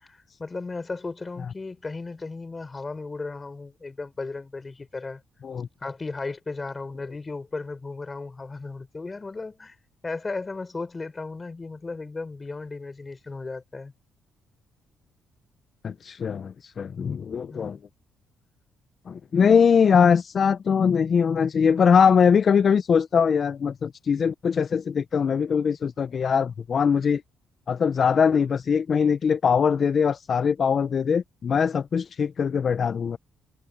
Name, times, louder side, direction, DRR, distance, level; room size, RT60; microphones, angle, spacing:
voice 1, 0.1-5.2 5.8-9.8 10.0-13.9 17.5-17.8, left 3 dB, 25° left, 4.1 m, -35 dB
voice 2, 15.8-17.8 19.1-27.2 27.7-33.2, left 6 dB, 50° left, 0.5 m, -21 dB
cardioid pair, 90°, 0 cm